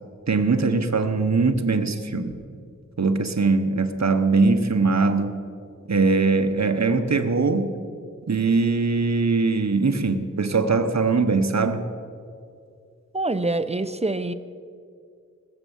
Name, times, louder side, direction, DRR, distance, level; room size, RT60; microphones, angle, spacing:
voice 1, 0.3-2.3 3.0-5.3 5.9-7.7 8.3-11.8, right 4 dB, 65° right, 8 dB, 1.1 m, -21 dB
voice 2, 13.1-14.3, right 2 dB, 20° right, 11 dB, 0.7 m, -25 dB
19.0 x 7.4 x 7.1 m, 2.3 s
wide cardioid pair, 65°, 30 cm